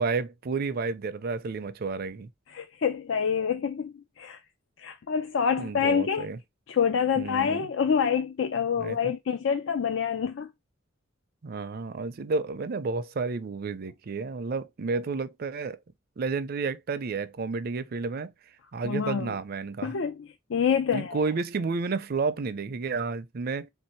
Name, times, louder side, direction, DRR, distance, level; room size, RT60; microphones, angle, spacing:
voice 1, 0.0-2.3 5.6-6.4 7.2-7.7 8.8-9.1 11.4-15.8 16.2-18.3 18.7-20.0 20.9-23.7, right 4 dB, 50° right, 0.4 m, -31 dB
voice 2, 2.5-4.4 4.8-6.3 6.7-10.5 18.8-19.3 19.8-21.2, left 7 dB, 80° left, 0.4 m, -27 dB
3.4 x 2.7 x 4.3 m
head